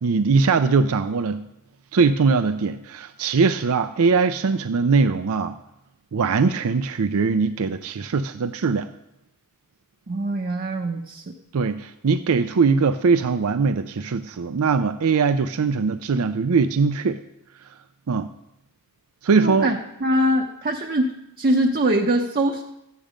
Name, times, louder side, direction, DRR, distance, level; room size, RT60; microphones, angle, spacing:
voice 1, 0.0-1.4 1.9-5.5 6.1-8.9 11.5-17.2 18.1-18.3 19.2-19.7, right 4 dB, 70° right, 11 dB, 0.5 m, -21 dB
voice 2, 10.1-11.2 19.4-22.6, right 1 dB, 45° right, 2 dB, 0.8 m, -23 dB
14.0 x 9.1 x 5.1 m, 0.87 s
head